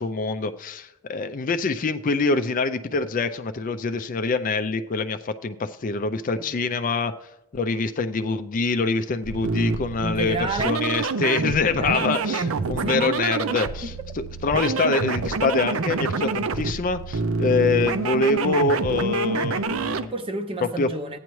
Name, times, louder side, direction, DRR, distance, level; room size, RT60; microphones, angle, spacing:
voice 1, 0.0-7.1 7.5-20.1 20.8-20.9, left 4 dB, 40° left, 0.4 m, -25 dB
sound 1, 9.2-20.1, right 4 dB, 70° right, 0.5 m, -27 dB
voice 2, 10.0-10.8 11.8-13.1 20.1-21.2, right 3 dB, 25° right, 0.7 m, -30 dB
14.5 x 9.2 x 3.1 m
head